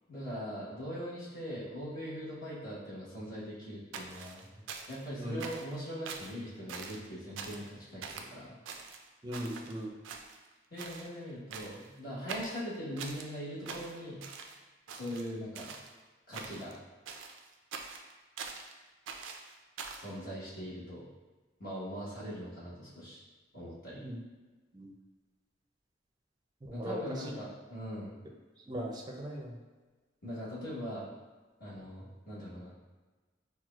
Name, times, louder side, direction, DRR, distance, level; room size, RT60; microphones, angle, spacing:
voice 1, 0.1-4.5 4.9-8.6 10.7-14.2 14.9-15.7 16.3-16.8 19.9-21.0 21.6-23.2 23.5-24.0 26.7-28.2 30.2-31.1 31.6-32.7, equal, 50° left, -9 dB, 1.3 m, -41 dB
sound 1, 3.9-5.1 5.4-5.8 6.1-6.4 6.7-7.1 7.4-7.7 8.0-8.3 8.7-9.7 10.0-10.5 10.8-11.1 11.5-11.9 12.3-13.3 13.7-14.6 14.9-15.9 16.3-16.8 17.1-18.7 19.1-20.1, right 5 dB, 90° right, 0.4 m, -44 dB
voice 2, 5.1-5.5 9.2-10.0 24.0-24.2 24.7-24.9 26.6-27.3 28.7-29.6, equal, 20° right, -1 dB, 0.5 m, -39 dB
5.9 x 2.2 x 2.4 m, 1.3 s
head